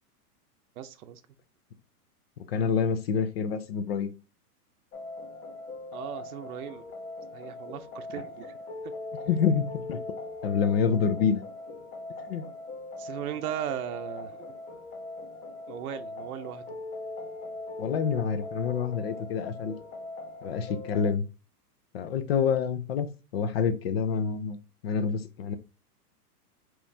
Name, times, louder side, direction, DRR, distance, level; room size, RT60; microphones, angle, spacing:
voice 1, 0.8-1.2 5.9-6.8 7.3-8.5 13.0-14.5 15.7-16.8, right 10 dB, 70° right, 0.6 m, -37 dB
voice 2, 2.5-4.1 9.3-10.0 10.4-11.4 12.3-12.4 17.8-19.8 20.4-21.2 21.9-23.1 23.3-24.6 24.8-25.6, left 6 dB, 45° left, 0.5 m, -27 dB
sound 1, 4.9-21.1, left 2 dB, 70° left, 1.4 m, -40 dB
5.1 x 3.1 x 2.6 m
hypercardioid pair, 155°, 46 cm